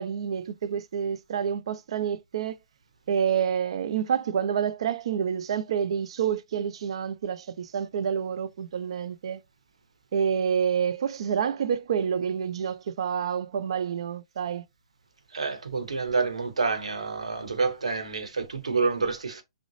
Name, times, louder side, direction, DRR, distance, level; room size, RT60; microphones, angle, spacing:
voice 1, 0.0-2.6 3.1-9.4 10.1-14.6, right 7 dB, 60° right, 0.4 m, -28 dB
voice 2, 15.3-19.4, right 4 dB, 85° right, 0.8 m, -28 dB
3.7 x 2.0 x 3.1 m
hypercardioid pair, 135°, 3 cm